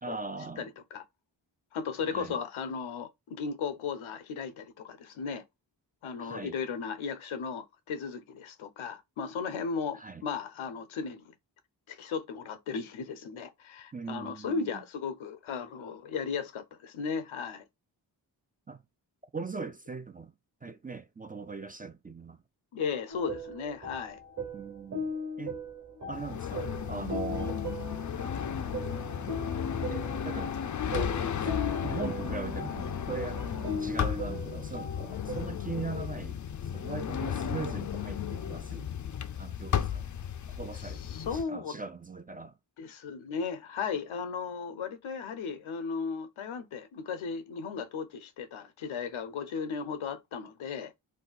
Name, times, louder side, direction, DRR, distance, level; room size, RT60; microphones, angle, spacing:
voice 1, 0.0-0.7 2.0-2.3 6.2-6.6 9.9-10.2 13.9-14.8 18.7-18.8 19.3-20.3 20.6-22.4 24.5-25.1 25.4-25.6 26.1-27.6 29.9-30.5 30.8-31.2 31.8-33.4 33.8-36.4 36.7-38.9 39.4-40.1 40.5-41.0 41.3-42.6, right 4 dB, 20° right, 0.4 m, -40 dB
voice 2, 0.6-1.0 1.7-5.4 6.0-11.3 11.9-17.6 22.7-24.2 40.7-41.8 42.8-50.9, left 5 dB, 85° left, 0.7 m, -36 dB
sound 1, 23.1-35.5, equal, 40° right, 1.4 m, -38 dB
sound 2, 26.1-41.4, left 8 dB, 40° left, 0.4 m, -34 dB
2.7 x 2.2 x 3.8 m
cardioid pair, 40°, 47 cm